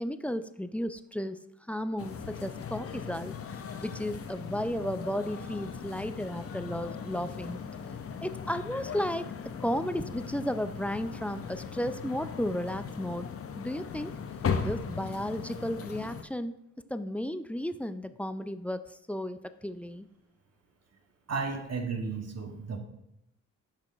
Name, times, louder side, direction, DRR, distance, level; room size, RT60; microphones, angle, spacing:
voice 1, 0.0-1.4 1.7-3.3 3.8-7.6 8.2-13.3 13.6-14.1 14.6-16.5 16.9-20.1, equal, 5° left, 11 dB, 0.3 m, -34 dB
sound 1, 2.0-16.2, left 6 dB, 40° left, 0.7 m, -38 dB
voice 2, 21.3-22.8, right 4 dB, 50° right, 3 dB, 1.1 m, -33 dB
8.7 x 5.7 x 2.4 m, 0.81 s
supercardioid pair, 55°, 34 cm